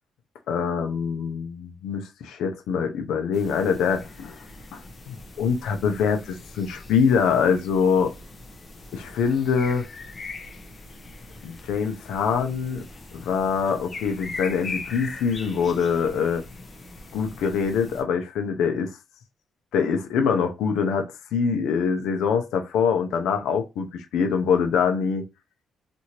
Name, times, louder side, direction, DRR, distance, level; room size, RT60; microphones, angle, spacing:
voice 1, 0.5-4.4 4.7-4.8 5.1-8.1 8.9-9.8 11.4-12.8 13.1-16.4 17.1-19.0 19.7-25.2, left 6 dB, 85° left, 0.6 m, -24 dB
sound 1, 3.3-18.0, left 3 dB, 35° left, 0.7 m, -41 dB
2.8 x 2.6 x 2.9 m
cardioid pair, 90°, 0 cm